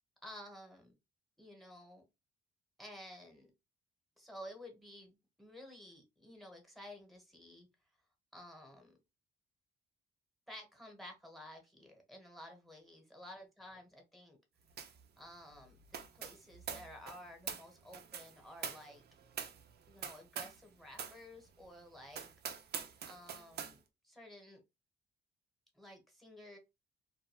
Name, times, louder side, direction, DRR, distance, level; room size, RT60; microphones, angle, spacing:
voice 1, 0.2-1.0 1.4-2.0 2.8-3.5 4.2-7.7 8.3-9.0 10.5-14.4 15.2-19.0 19.9-22.3 23.0-24.6 25.7-26.6, left 1 dB, ahead, 2 dB, 1.1 m, -53 dB
sound 1, 14.8-15.0 15.3-20.6 20.9-21.2 21.6-21.7 22.1-23.7, right 7 dB, 55° right, 0.5 m, -45 dB
2.6 x 2.2 x 2.9 m, 0.25 s
cardioid pair, 90°, 20 cm